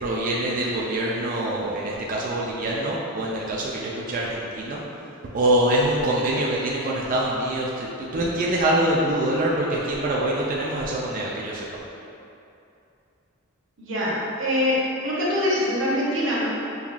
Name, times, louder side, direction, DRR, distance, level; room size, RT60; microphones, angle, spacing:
voice 1, 0.0-4.8 5.3-7.9 8.1-11.7, right 1 dB, 40° right, -4 dB, 0.3 m, -24 dB
voice 2, 13.8-14.1 14.4-16.5, left 1 dB, 65° right, -6 dB, 0.9 m, -23 dB
5.4 x 2.3 x 2.4 m, 2.7 s
head